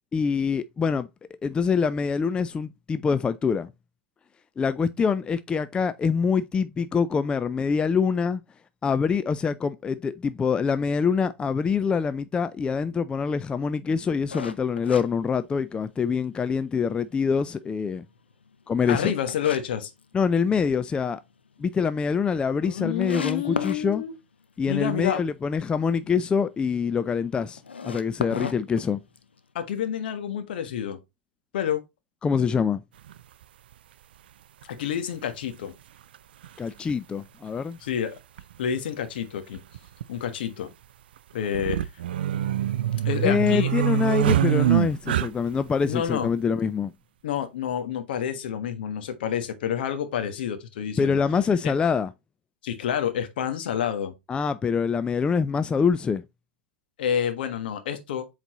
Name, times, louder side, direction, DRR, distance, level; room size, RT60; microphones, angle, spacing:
voice 1, 0.1-1.1 1.4-3.7 4.6-8.4 8.8-18.0 18.7-19.1 20.1-21.2 21.6-24.0 24.6-29.0 32.2-32.8 36.6-37.8 43.2-46.9 51.0-52.1 54.3-56.2, left 6 dB, 15° left, 0.4 m, -25 dB
sound 1, 14.3-16.0 16.4-16.5 17.1-19.6 20.0-20.7 21.1-21.2 21.6-21.7 21.8-21.9 22.5-22.6 23.0-23.8 27.6-29.4, left 5 dB, 85° left, 0.7 m, -35 dB
voice 2, 18.9-19.9 22.6-24.1 24.7-25.2 29.5-31.0 31.5-31.8 34.6-35.7 37.8-38.2 38.6-39.6 40.1-40.7 41.3-41.8 43.0-43.7 45.9-46.3 47.2-51.2 51.6-51.7 52.6-54.1 57.0-58.3, left 9 dB, 65° left, 1.4 m, -28 dB
sound 2, 33.1-33.2 34.6-34.7 36.1-36.2 36.4-36.5 38.4-38.5 38.8-38.9 39.6-40.0 41.4-45.6, right 11 dB, 65° right, 0.5 m, -24 dB
8.0 x 4.1 x 3.0 m
hypercardioid pair, 100°, 6 cm